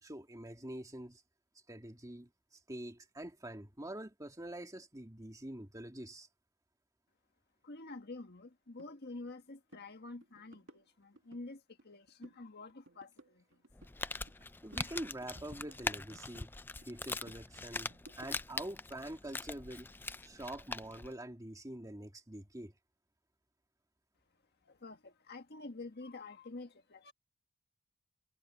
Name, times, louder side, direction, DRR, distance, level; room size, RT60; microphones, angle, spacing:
voice 1, 0.0-1.2 1.7-2.3 2.7-6.3 14.6-16.5 16.9-19.9 20.2-22.7, right 1 dB, 15° right, 2.3 m, -45 dB
voice 2, 7.6-13.6 24.6-27.1, left 2 dB, 50° left, 1.6 m, -48 dB
sound 1, 8.8-8.9 9.3-9.4 9.7-9.9 10.2-11.4 11.8-12.4 12.7-14.4 14.7-16.5 16.8-18.7, right 1 dB, 65° right, 2.1 m, -59 dB
Crumpling crinkling, 13.7-21.1, left 3 dB, 10° left, 0.4 m, -42 dB
head